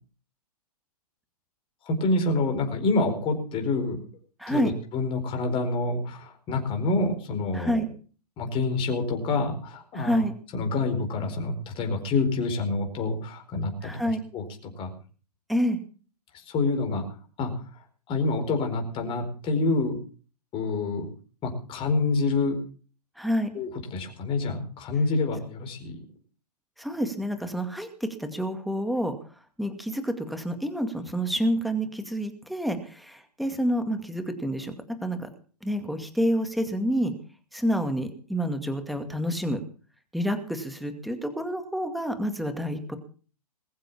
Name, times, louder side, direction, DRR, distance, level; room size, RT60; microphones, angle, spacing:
voice 1, 1.9-4.0 4.5-7.8 8.4-10.2 10.5-13.9 14.3-14.4 14.8-14.9 16.3-17.0 17.4-17.5 18.1-20.0 20.5-21.1 21.4-22.6 23.5-26.0, left 3 dB, 25° left, 3 dB, 4.5 m, -27 dB
voice 2, 4.4-4.7 7.5-7.9 9.9-10.3 13.8-14.2 15.5-15.8 23.2-23.5 26.8-29.1 29.6-34.7 35.0-35.3 35.6-37.1 37.5-39.6 40.1-43.0, equal, ahead, 7 dB, 2.2 m, -28 dB
21.5 x 7.5 x 7.2 m, 0.41 s
figure-of-eight pair, 115°, 20 cm